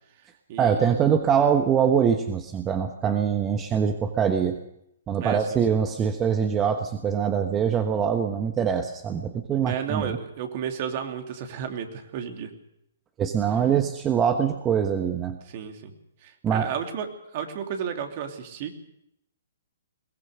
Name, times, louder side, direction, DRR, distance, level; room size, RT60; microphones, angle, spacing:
voice 1, 0.6-4.6 5.1-10.1 13.2-15.4 16.4-16.7, right 7 dB, 20° right, 6 dB, 1.2 m, -23 dB
voice 2, 5.2-5.6 9.6-12.5 15.5-15.9 16.2-17.1 17.3-18.7, right 8 dB, 45° right, 5 dB, 2.8 m, -32 dB
22.0 x 18.0 x 6.6 m, 0.79 s
hypercardioid pair, 135°, 0 cm